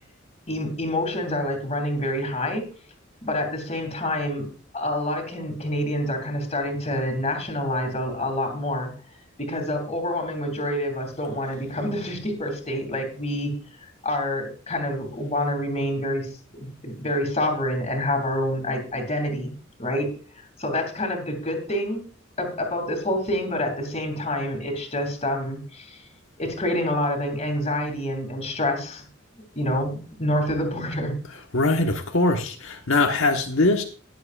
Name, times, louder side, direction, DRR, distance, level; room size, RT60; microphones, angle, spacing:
voice 1, 0.5-2.7 3.2-4.5 4.7-8.9 9.4-13.6 14.0-19.5 19.8-20.1 20.6-22.0 22.4-26.0 26.4-29.0 29.5-31.1, left 1 dB, 35° left, 3 dB, 2.8 m, -27 dB
voice 2, 31.5-33.8, left 2 dB, 85° left, 2 dB, 1.3 m, -21 dB
20.0 x 7.7 x 2.5 m, 0.38 s
head